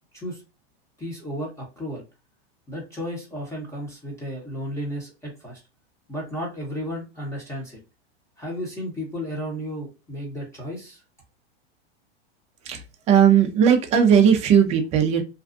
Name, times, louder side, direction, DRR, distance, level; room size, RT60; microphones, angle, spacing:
voice 1, 1.0-2.0 2.7-5.6 6.1-7.8 8.4-11.0, equal, 10° left, -3 dB, 0.8 m, -33 dB
voice 2, 12.6-15.2, right 8 dB, 20° right, 5 dB, 0.4 m, -18 dB
2.5 x 2.3 x 2.4 m, 0.28 s
supercardioid pair, 135°, 32 cm